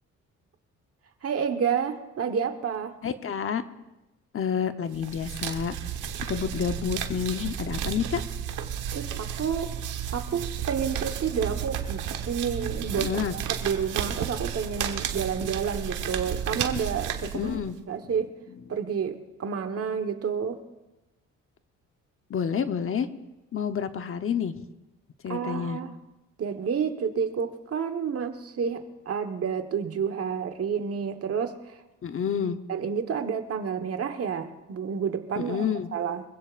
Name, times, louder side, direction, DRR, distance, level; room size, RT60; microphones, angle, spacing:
voice 1, 1.2-3.0 8.9-9.7 10.1-13.1 13.5-17.5 17.9-18.3 18.7-20.6 25.3-25.9 26.4-31.8 32.7-35.7 35.9-36.2, right 7 dB, 50° right, 7 dB, 1.3 m, -30 dB
voice 2, 3.0-3.6 4.3-5.7 6.2-8.2 12.9-13.3 17.3-17.8 22.3-23.1 23.5-24.6 25.2-25.8 32.0-32.6 35.4-35.9, left 7 dB, 45° left, 9 dB, 0.9 m, -29 dB
sound 1, 4.9-17.8, right 9 dB, 85° right, 1.2 m, -32 dB
24.5 x 16.0 x 2.5 m, 1.0 s
cardioid pair, 90°, 30 cm